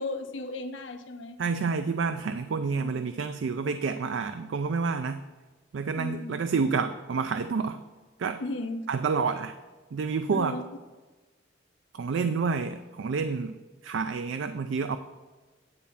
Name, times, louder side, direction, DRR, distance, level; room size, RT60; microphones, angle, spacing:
voice 1, 0.0-1.4 2.8-3.0 5.9-6.4 8.4-8.8 10.3-10.6, left 2 dB, 75° left, 7 dB, 0.8 m, -35 dB
voice 2, 1.4-5.2 5.7-7.8 8.2-8.4 8.9-9.5 9.9-10.6 11.9-13.6 13.8-15.0, right 5 dB, 75° right, 9 dB, 0.4 m, -29 dB
9.6 x 4.1 x 7.0 m, 1.3 s
head